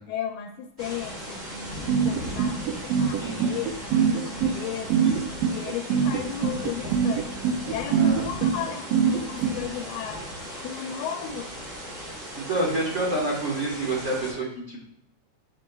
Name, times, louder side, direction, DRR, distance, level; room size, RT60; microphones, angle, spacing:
voice 1, 0.1-5.1 5.5-11.5, left 9 dB, 85° left, 3 dB, 2.0 m, -35 dB
sound 1, 0.8-14.3, equal, 20° right, 1.3 m, -38 dB
sound 2, 1.9-9.5, right 7 dB, 85° right, 1.4 m, -23 dB
voice 2, 3.2-3.5 5.0-5.1 7.8-8.2 12.5-14.9, right 2 dB, 60° right, -4 dB, 0.7 m, -28 dB
7.2 x 6.7 x 2.3 m, 0.78 s
omnidirectional pair, 3.4 m